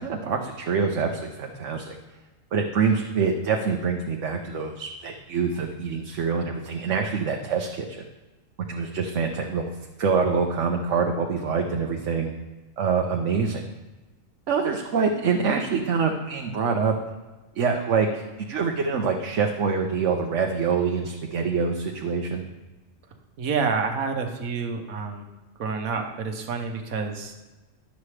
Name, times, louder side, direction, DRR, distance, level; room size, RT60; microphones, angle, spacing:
voice 1, 0.0-1.9 2.5-8.0 8.7-9.7 10.0-12.3 12.8-13.6 14.5-16.9 17.5-22.4, right 5 dB, 65° right, 2 dB, 1.1 m, -25 dB
voice 2, 23.4-25.2 25.6-27.4, right 5 dB, 90° right, 4 dB, 1.4 m, -28 dB
11.5 x 7.2 x 3.3 m, 1.1 s
omnidirectional pair, 1.4 m